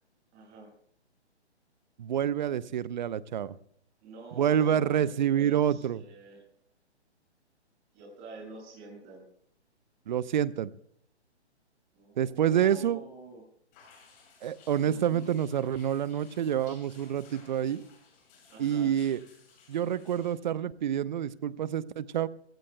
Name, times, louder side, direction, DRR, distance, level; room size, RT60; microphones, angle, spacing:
voice 1, 0.3-0.7 4.0-6.4 7.9-9.3 11.9-13.4 14.8-15.3 18.5-18.9, right 3 dB, 25° right, -1 dB, 7.2 m, -47 dB
voice 2, 2.0-3.6 4.4-6.0 10.1-10.7 12.2-13.0 14.4-17.8 18.6-19.2 19.7-22.3, right 9 dB, 40° right, 18 dB, 0.8 m, -27 dB
sound 1, 13.7-20.3, left 5 dB, 25° left, 6.6 m, -58 dB
28.5 x 17.0 x 2.2 m, 0.65 s
figure-of-eight pair, 140°, 34 cm